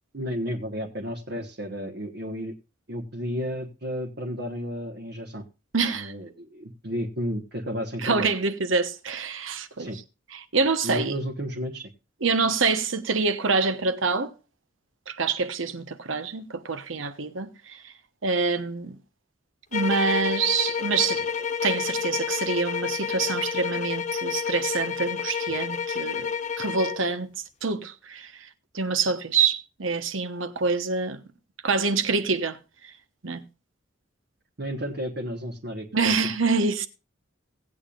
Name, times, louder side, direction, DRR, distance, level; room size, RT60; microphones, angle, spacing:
voice 1, 0.1-2.5 2.9-5.4 5.9-8.3 9.8-10.0 10.8-11.9 34.6-36.1, equal, 55° right, 1.4 m, -32 dB
voice 2, 5.7-6.1 8.0-9.9 10.3-11.1 12.2-14.3 15.1-17.8 18.2-19.0 19.7-21.3 21.6-26.3 26.6-27.3 27.6-28.3 28.7-31.2 31.6-32.6 33.2-33.4 35.9-36.9, right 4 dB, 85° right, 1.1 m, -26 dB
sound 1, 19.7-27.1, left 7 dB, 40° left, 0.5 m, -29 dB
18.0 x 8.7 x 2.5 m
head